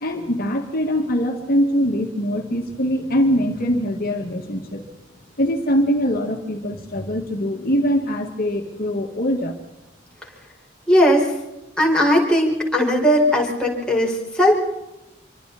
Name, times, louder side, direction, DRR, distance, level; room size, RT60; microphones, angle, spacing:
voice 1, 0.0-4.9 5.4-9.6, equal, 50° left, 2 dB, 2.0 m, -22 dB
voice 2, 10.9-11.4 11.8-14.6, equal, 5° left, -2 dB, 5.2 m, -18 dB
26.5 x 24.0 x 4.2 m, 0.98 s
head